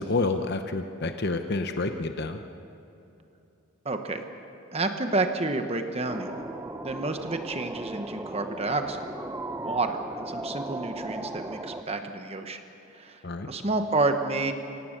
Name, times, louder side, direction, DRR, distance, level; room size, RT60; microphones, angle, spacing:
voice 1, 0.0-2.4 13.2-13.5, left 3 dB, 55° left, 7 dB, 0.9 m, -29 dB
voice 2, 3.8-4.2 4.7-6.4 6.8-9.0 9.6-12.6 12.9-13.2 13.5-14.5, right 2 dB, 30° right, 6 dB, 1.1 m, -29 dB
sound 1, 6.1-11.8, right 2 dB, 15° right, 0.6 m, -37 dB
24.5 x 17.5 x 6.6 m, 2.8 s
head